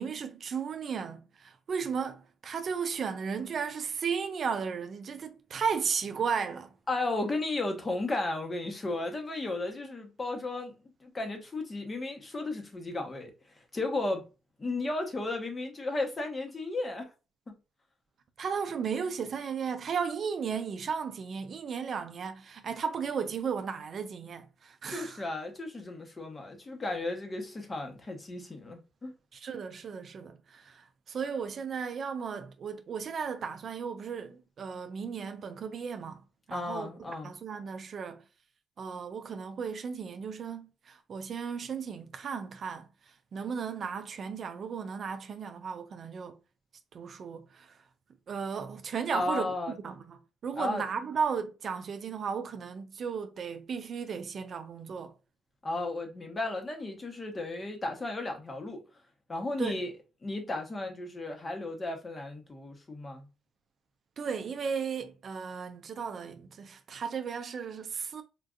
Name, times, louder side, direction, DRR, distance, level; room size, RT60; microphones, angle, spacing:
voice 1, 0.0-6.7 18.4-25.2 29.3-38.2 38.8-46.4 46.9-47.8 48.3-49.5 49.8-55.1 59.6-59.8 64.2-68.2, right 6 dB, 55° right, 0.5 m, -35 dB
voice 2, 6.9-10.7 11.0-13.3 13.7-14.3 14.6-17.1 17.5-17.6 24.9-29.1 36.5-37.3 49.1-49.7 50.6-50.8 55.6-58.8 59.3-59.9 60.2-63.3, left 2 dB, 30° left, 1.0 m, -34 dB
3.6 x 2.5 x 2.4 m
cardioid pair, 90°, 0 cm